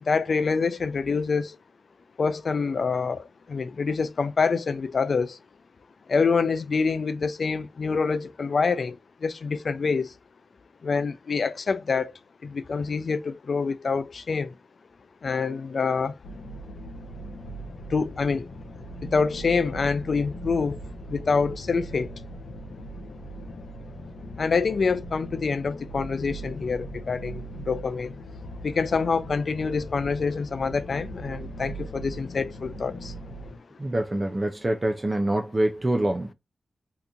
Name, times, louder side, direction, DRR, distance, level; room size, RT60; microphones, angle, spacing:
voice 1, 0.0-1.6 2.2-5.4 6.1-10.1 10.8-12.1 12.4-14.6 15.2-16.2 17.9-18.5 19.0-20.8 21.1-22.2 24.4-28.1 28.6-33.2, left 5 dB, 55° left, 0.3 m, -26 dB
sound 1, 16.2-33.6, right 1 dB, 90° left, 0.8 m, -39 dB
voice 2, 33.8-36.3, right 1 dB, 25° right, 0.4 m, -25 dB
2.8 x 2.5 x 3.5 m
wide cardioid pair, 120°, 0 cm